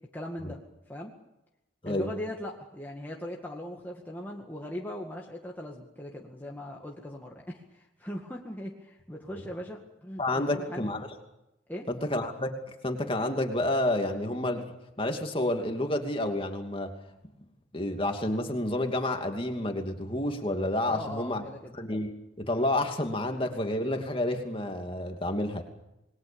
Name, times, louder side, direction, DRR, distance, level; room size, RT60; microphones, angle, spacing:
voice 1, 0.1-0.6 0.9-1.1 1.9-10.9 11.7-11.9 20.9-21.7, left 1 dB, 10° left, -1 dB, 2.0 m, -39 dB
voice 2, 10.2-11.1 11.9-12.5 12.8-14.7 15.0-16.9 17.7-21.4 21.7-22.1 22.4-25.6, left 1 dB, 25° left, 4 dB, 2.6 m, -29 dB
28.0 x 21.5 x 7.1 m, 0.89 s
head